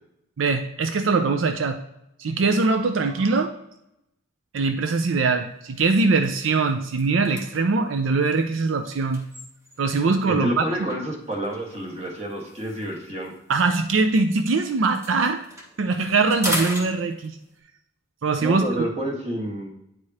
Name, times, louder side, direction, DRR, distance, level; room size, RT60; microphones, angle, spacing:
voice 1, 0.4-1.8 2.2-3.5 4.5-9.2 9.8-10.6 13.5-15.4 15.8-17.4 18.2-18.6, right 4 dB, 80° right, 7 dB, 0.5 m, -22 dB
sound 1, 4.9-5.2 5.6-5.7 6.1-10.0 10.9-14.5 14.7-17.6, equal, 15° right, 1.0 m, -37 dB
voice 2, 10.3-13.3 18.4-19.7, right 1 dB, 30° right, -1 dB, 1.5 m, -29 dB
9.2 x 4.8 x 2.8 m, 0.82 s
head